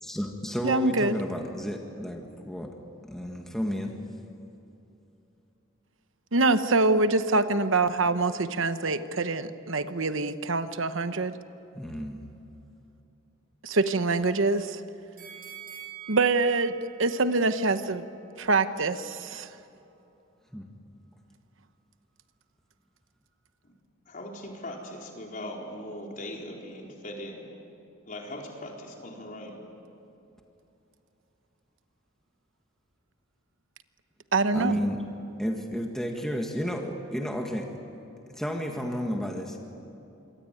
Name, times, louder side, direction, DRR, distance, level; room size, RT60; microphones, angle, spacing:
voice 1, 0.0-2.8 3.0-4.0 11.7-12.2 20.5-20.7 34.5-35.1 35.4-37.7 38.3-39.6, equal, ahead, 1 dB, 1.8 m, -32 dB
voice 2, 0.6-1.1 6.3-11.3 13.6-14.8 16.1-18.0 18.4-19.5 34.3-34.8, right 3 dB, 70° right, 11 dB, 1.1 m, -25 dB
sound 1, 15.2-18.3 18.7-18.8, right 10 dB, 45° right, 7.7 m, -46 dB
voice 3, 24.1-27.5 28.1-29.6, left 1 dB, 40° left, 0 dB, 4.4 m, -40 dB
27.5 x 23.5 x 9.2 m, 2.9 s
head